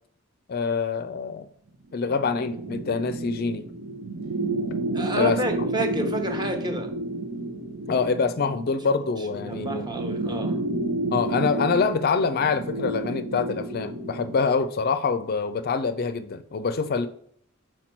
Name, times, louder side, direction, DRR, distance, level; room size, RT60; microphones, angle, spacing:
voice 1, 0.5-1.5 1.9-3.7 5.2-5.4 7.9-9.8 11.1-17.1, left 5 dB, 50° left, 11 dB, 0.4 m, -25 dB
sound 1, 2.0-14.5, right 2 dB, 90° right, 0.8 m, -31 dB
voice 2, 4.9-6.9 9.3-10.6, right 1 dB, 20° right, 4 dB, 0.9 m, -30 dB
5.9 x 4.5 x 4.4 m, 0.64 s
head